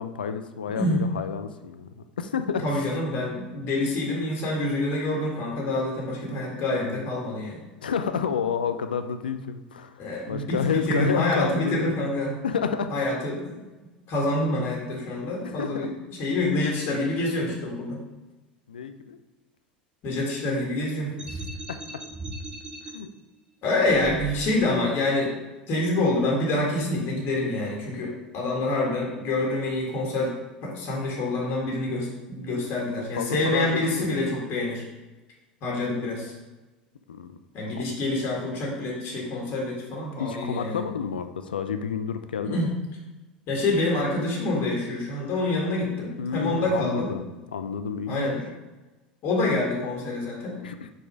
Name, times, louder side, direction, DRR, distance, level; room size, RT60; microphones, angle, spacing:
voice 1, 0.0-1.9 2.2-2.9 7.8-9.9 10.3-12.0 12.4-12.9 15.4-15.8 18.7-19.2 21.3-21.4 21.7-21.8 22.9-23.1 32.8-34.1 37.1-38.0 40.2-42.7 46.2-47.2 47.5-48.4 50.6-50.9, left 6 dB, 85° left, 9 dB, 0.5 m, -30 dB
voice 2, 0.7-1.1 2.6-7.6 10.0-12.4 12.9-13.7 14.1-18.0 20.0-21.1 23.6-25.3 25.7-30.3 30.6-34.8 35.6-36.3 37.5-40.8 42.4-42.7 43.5-47.1 48.1-48.4 49.2-50.6, left 2 dB, 50° left, -2 dB, 1.9 m, -27 dB
sound 1, 21.2-22.9 23.8-24.7, right 2 dB, 20° right, 1.5 m, -37 dB
5.1 x 4.3 x 4.8 m, 1.1 s
hypercardioid pair, 80°, 5 cm